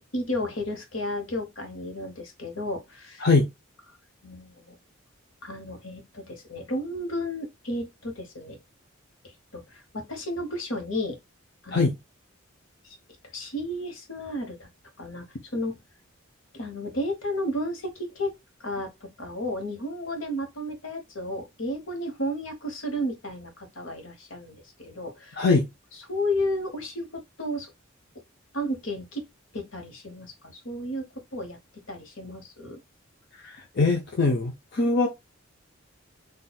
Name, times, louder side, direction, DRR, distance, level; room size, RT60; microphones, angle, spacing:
voice 1, 0.0-3.2 4.2-4.8 5.4-8.6 9.2-11.2 11.6-11.9 12.8-13.0 13.3-14.7 15.0-15.3 15.5-15.8 16.5-18.3 18.6-25.4 26.1-27.7 28.5-29.2 29.5-31.0 31.3-31.6 31.9-32.8, left 1 dB, 70° left, 1.2 m, -33 dB
voice 2, 3.2-3.5 11.7-11.9 25.4-25.6 33.4-35.1, left 3 dB, 55° left, 0.7 m, -22 dB
4.2 x 2.6 x 2.3 m
head